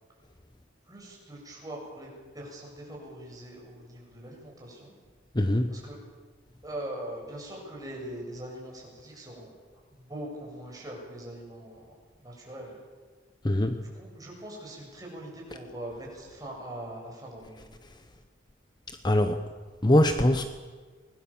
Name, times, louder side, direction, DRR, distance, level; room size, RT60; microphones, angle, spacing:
voice 1, 0.9-2.1 2.3-4.9 5.7-6.0 6.6-9.5 9.9-12.8 13.8-17.8, right 1 dB, 20° right, -2 dB, 7.8 m, -42 dB
voice 2, 5.3-5.7 13.4-13.8 19.0-19.4 19.8-20.5, left 1 dB, 25° left, 7 dB, 1.0 m, -22 dB
25.0 x 20.5 x 7.4 m, 1.4 s
head